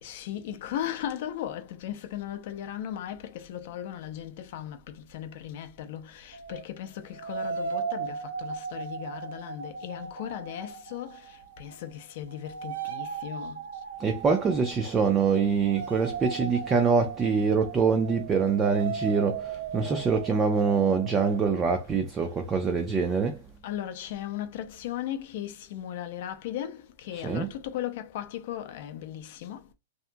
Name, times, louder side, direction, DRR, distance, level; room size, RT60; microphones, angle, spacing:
voice 1, 0.0-13.7 23.0-23.3 23.6-29.7, left 11 dB, 50° left, 0.5 m, -37 dB
sound 1, 6.3-6.6 7.1-11.9 12.2-21.7, right 6 dB, 75° right, 0.6 m, -37 dB
voice 2, 14.0-23.4 27.1-27.5, right 5 dB, 15° right, 0.4 m, -25 dB
2.7 x 2.5 x 2.2 m
supercardioid pair, 165°, 0 cm